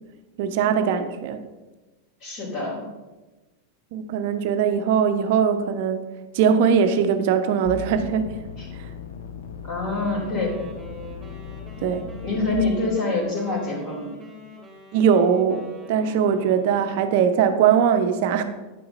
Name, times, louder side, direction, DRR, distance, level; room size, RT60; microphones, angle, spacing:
voice 1, 0.4-1.4 3.9-6.0 6.3-8.3 8.7-8.9 11.8-12.1 14.9-18.4, right 7 dB, 50° right, 9 dB, 0.7 m, -21 dB
voice 2, 2.2-2.8 8.6-8.7 9.6-10.5 12.2-14.1, left 3 dB, 40° left, -5 dB, 3.1 m, -25 dB
sound 1, 7.7-12.5, left 7 dB, 60° left, 0.8 m, -37 dB
Wind instrument woodwind instrument, 9.9-17.1, right 1 dB, 10° right, 2.4 m, -44 dB
10.0 x 8.5 x 2.8 m, 1.2 s
figure-of-eight pair, 90°, 0 cm